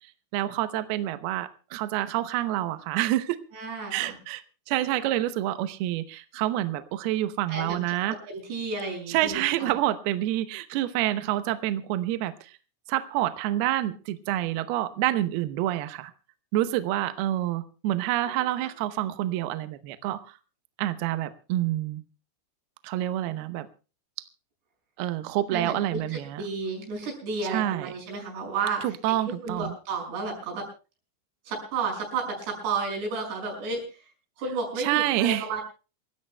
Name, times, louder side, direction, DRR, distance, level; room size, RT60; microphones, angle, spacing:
voice 1, 0.3-3.4 3.9-8.2 9.1-12.6 12.9-16.1 16.5-20.4 20.8-22.0 22.8-23.7 25.0-26.5 27.4-27.9 28.8-29.7 34.8-35.5, right 14 dB, 85° right, 10 dB, 2.2 m, -28 dB
voice 2, 3.5-4.2 7.5-7.8 8.3-9.7 18.3-18.7 25.5-29.2 29.4-30.7 31.5-34.0 34.4-35.6, right 4 dB, 60° right, 0 dB, 7.9 m, -32 dB
27.5 x 15.5 x 2.2 m, 0.34 s
omnidirectional pair, 5.6 m